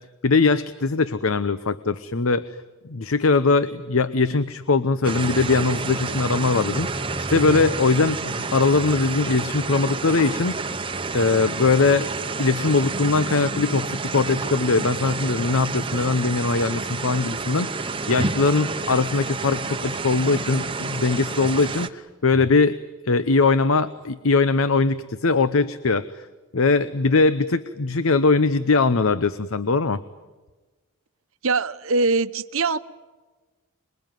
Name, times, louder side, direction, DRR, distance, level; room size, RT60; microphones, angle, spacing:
voice 1, 0.2-2.4 2.9-10.6 11.1-12.1 12.4-22.8 23.0-26.0 26.5-30.0, left 4 dB, 70° left, 14 dB, 0.8 m, -21 dB
sound 1, 5.0-21.9, right 3 dB, 25° right, 0.9 m, -29 dB
voice 2, 31.4-32.8, right 3 dB, 65° right, 12 dB, 1.0 m, -22 dB
27.0 x 21.5 x 9.3 m, 1.2 s
head